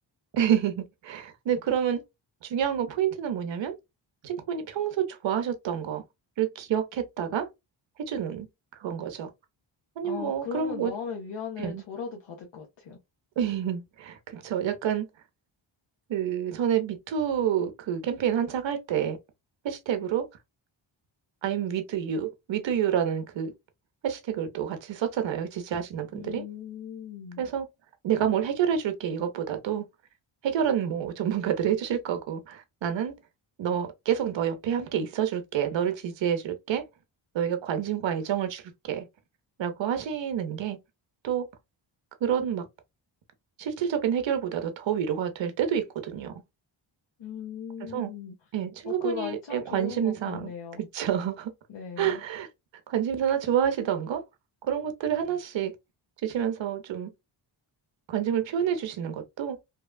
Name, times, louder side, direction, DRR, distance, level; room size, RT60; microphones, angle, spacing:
voice 1, 0.3-2.0 2.4-3.7 4.2-6.0 6.4-7.5 8.1-8.5 8.8-9.3 10.0-10.9 11.6-11.8 13.4-15.1 16.1-19.2 19.6-20.3 21.4-23.5 24.0-26.4 27.4-27.7 28.0-29.8 30.4-33.1 33.6-36.8 37.3-38.6 38.9-39.1 39.6-40.8 41.2-41.5 42.2-42.7 43.6-46.3 47.8-48.1 48.5-50.5 50.8-51.5 52.0-52.5 52.9-54.2 54.6-55.7 56.2-57.1 58.1-59.6, right 9 dB, 65° right, 0.8 m, -28 dB
voice 2, 10.0-13.0 26.1-27.5 47.2-48.4 48.8-50.8 51.7-52.2, left 6 dB, 65° left, 0.8 m, -37 dB
2.9 x 2.3 x 2.2 m
cardioid pair, 80°, 48 cm